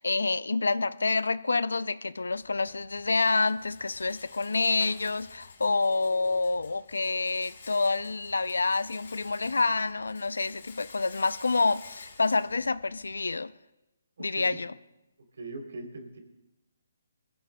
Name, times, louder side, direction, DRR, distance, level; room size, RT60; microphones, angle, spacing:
voice 1, 0.0-13.5 14.2-14.7, left 3 dB, 90° left, 0.4 m, -28 dB
Rattle, 2.3-13.3, left 4 dB, 65° left, 3.1 m, -51 dB
voice 2, 14.2-14.6 15.4-16.2, right 2 dB, 70° right, 3.2 m, -40 dB
24.5 x 15.5 x 2.2 m
hypercardioid pair, 155°, 0 cm